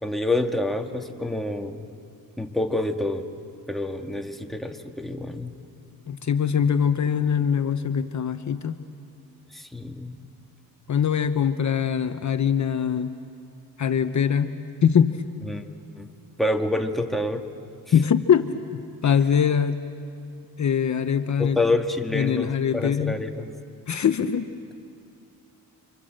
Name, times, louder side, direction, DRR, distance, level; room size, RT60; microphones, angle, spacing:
voice 1, 0.0-1.9 2.4-3.3 3.7-5.5 9.5-10.2 15.5-16.1 16.4-17.5 21.4-23.5, left 2 dB, ahead, 3 dB, 1.8 m, -27 dB
voice 2, 6.1-8.8 10.9-13.1 13.8-15.2 17.9-19.8 20.6-21.6 22.1-23.2 23.9-24.5, left 7 dB, 50° left, 9 dB, 0.9 m, -23 dB
30.0 x 25.5 x 7.8 m, 2.4 s
cardioid pair, 100°, 36 cm